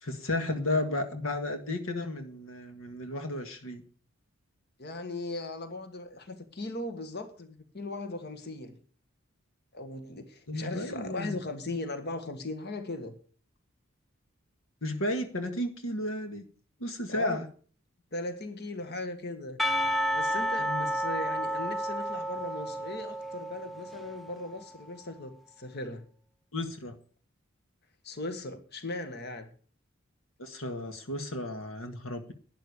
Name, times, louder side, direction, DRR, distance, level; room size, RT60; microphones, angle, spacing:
voice 1, 0.0-3.8 10.5-11.4 14.8-16.4 16.8-17.5 20.6-20.9 26.5-26.9 30.4-32.3, left 1 dB, 75° left, 6 dB, 1.7 m, -33 dB
voice 2, 4.8-8.8 9.7-13.1 17.1-17.4 18.1-19.6 20.1-25.3 25.6-26.0 28.0-29.5, left 2 dB, 50° left, 8 dB, 1.8 m, -38 dB
Percussion, 19.6-24.4, equal, ahead, 0.6 m, -31 dB
12.0 x 10.0 x 6.7 m, 0.42 s
head